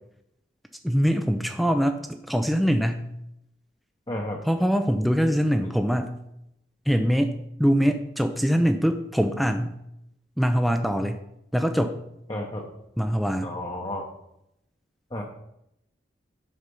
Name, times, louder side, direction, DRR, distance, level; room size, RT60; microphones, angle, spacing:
voice 1, 0.8-3.0 4.5-6.1 6.9-9.7 10.4-11.2 11.5-12.0 13.0-13.5, equal, ahead, 6 dB, 0.4 m, -23 dB
voice 2, 4.1-4.4 5.6-5.7 12.3-12.7 13.4-14.0 15.1-15.2, left 1 dB, 25° left, -1 dB, 0.9 m, -32 dB
8.1 x 5.8 x 5.3 m, 0.81 s
head